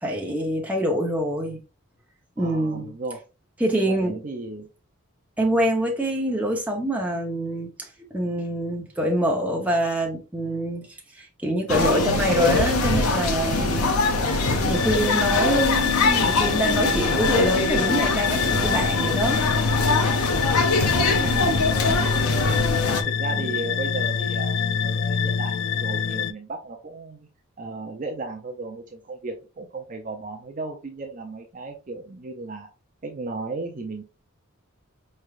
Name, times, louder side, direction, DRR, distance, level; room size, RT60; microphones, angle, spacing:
voice 1, 0.0-1.6 2.4-2.9 3.6-4.2 5.4-10.9 11.2-14.0 14.3-19.4 19.9-20.1 21.7-22.3 23.3-23.5, right 1 dB, 5° right, 0.7 m, -26 dB
voice 2, 2.4-3.2 3.8-4.7 20.3-22.1 22.6-22.7 23.0-27.3 27.6-32.7 33.0-34.0, right 3 dB, 35° right, 0.5 m, -35 dB
sound 1, 11.7-23.0, left 3 dB, 85° left, 0.6 m, -23 dB
sound 2, 14.7-26.3, left 7 dB, 55° left, 0.3 m, -26 dB
4.6 x 3.2 x 2.4 m
head